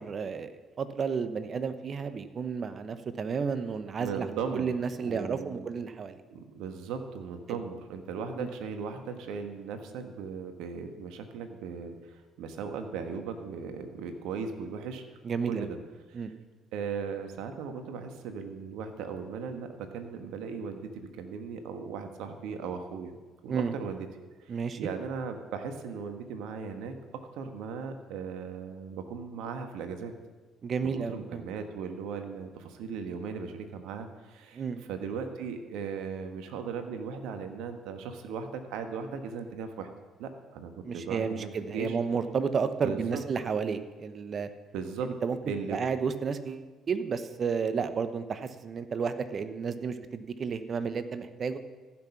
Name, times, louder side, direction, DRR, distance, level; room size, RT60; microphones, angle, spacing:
voice 1, 0.0-6.2 7.5-7.6 8.3-8.5 15.2-15.7 16.1-16.3 23.5-23.7 24.5-24.9 30.6-31.4 34.5-34.8 40.8-44.5 45.0-45.4 45.7-51.6, right 6 dB, 50° right, 11 dB, 0.9 m, -32 dB
voice 2, 4.0-4.7 5.0-5.7 6.3-15.0 15.5-15.8 16.1-16.2 16.7-23.1 23.4-24.1 24.4-30.1 30.8-34.6 34.9-39.9 40.2-42.0 42.8-43.2 44.7-45.1 45.5-45.8, right 6 dB, 75° right, 7 dB, 1.2 m, -37 dB
14.5 x 6.2 x 5.9 m, 1.3 s
hypercardioid pair, 55°, 0 cm